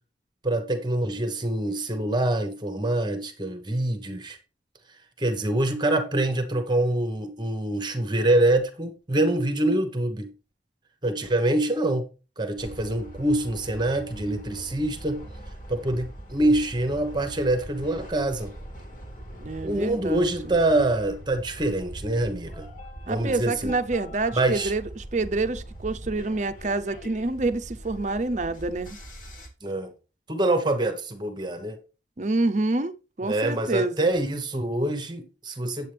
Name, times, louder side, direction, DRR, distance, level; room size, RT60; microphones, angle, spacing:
voice 1, 0.4-4.4 5.2-10.3 11.0-12.1 12.4-15.2 15.7-18.5 19.6-22.7 23.1-23.7 24.4-24.7 29.6-29.9 30.3-31.8 33.2-35.9, right 1 dB, 25° right, 1.1 m, -25 dB
sound 1, 12.6-29.5, right 1 dB, 45° left, 2.1 m, -41 dB
voice 2, 19.4-20.5 23.1-29.0 32.2-34.1, right 2 dB, 40° right, 0.6 m, -27 dB
8.4 x 8.3 x 3.4 m
head